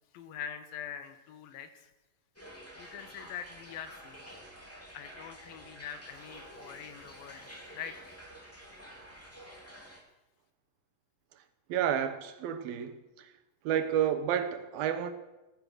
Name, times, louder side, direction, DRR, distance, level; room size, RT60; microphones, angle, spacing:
voice 1, 0.1-1.9 2.8-4.4 4.9-8.0, left 8 dB, 80° left, 3.0 m, -44 dB
sound 1, 2.3-10.0, equal, 5° left, 2.3 m, -50 dB
voice 2, 11.7-13.3 13.6-15.1, right 9 dB, 80° right, 3.0 m, -30 dB
15.0 x 14.0 x 6.4 m
omnidirectional pair, 4.2 m